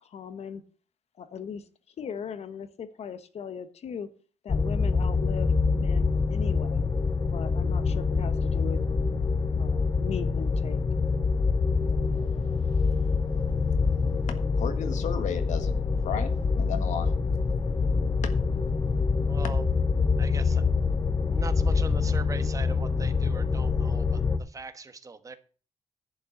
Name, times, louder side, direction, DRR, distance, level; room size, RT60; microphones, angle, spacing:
voice 1, 0.1-0.6 1.2-1.6 2.0-4.1 4.4-6.9 7.3-8.8 9.6-10.8, left 7 dB, 60° left, 12 dB, 1.2 m, -38 dB
sound 1, 4.5-24.4, left 4 dB, 35° left, 0.9 m, -25 dB
voice 2, 14.6-15.7 16.0-17.1, left 7 dB, 85° left, 8 dB, 1.5 m, -33 dB
voice 3, 19.3-19.7 20.2-20.6 21.3-25.4, right 4 dB, 30° right, 10 dB, 1.2 m, -40 dB
11.0 x 5.4 x 8.4 m, 0.39 s
cardioid pair, 130°, 12 cm